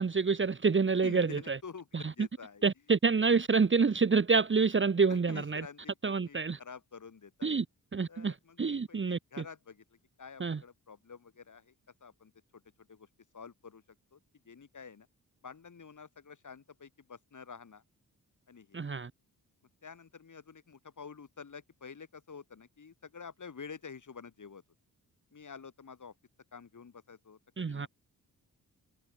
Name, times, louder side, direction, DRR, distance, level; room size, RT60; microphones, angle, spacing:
voice 1, 0.0-1.6 1.9-2.3 2.6-5.7 6.0-6.6 7.4-7.6 7.9-9.4 10.4-10.6 18.7-19.1 27.6-27.9, right 5 dB, 30° right, 1.0 m, -28 dB
voice 2, 1.0-2.6 5.1-7.5 8.1-9.8 10.2-11.7 12.0-13.1 13.3-13.8 14.1-14.2 14.4-15.1 15.4-17.8 18.5-18.8 19.8-24.6 25.3-26.1 26.5-27.9, left 5 dB, 50° left, 4.8 m, -49 dB
cardioid pair, 75°, 38 cm